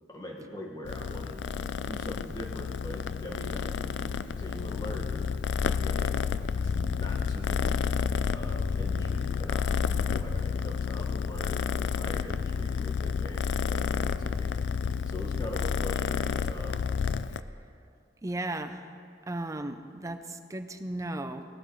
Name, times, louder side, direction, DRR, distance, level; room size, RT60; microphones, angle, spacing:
voice 1, 0.1-1.4 1.7-5.3 5.8-6.2 6.5-7.8 8.3-9.7 10.1-14.6 14.8-16.8, left 1 dB, 20° left, -1 dB, 1.6 m, -42 dB
Purr, 0.8-17.4, left 6 dB, 70° left, 0.4 m, -30 dB
sound 1, 8.3-16.4, left 6 dB, 50° left, 1.4 m, -50 dB
voice 2, 18.2-18.8 19.3-21.4, right 1 dB, 15° right, 8 dB, 0.5 m, -35 dB
18.5 x 11.5 x 3.2 m, 2.3 s
head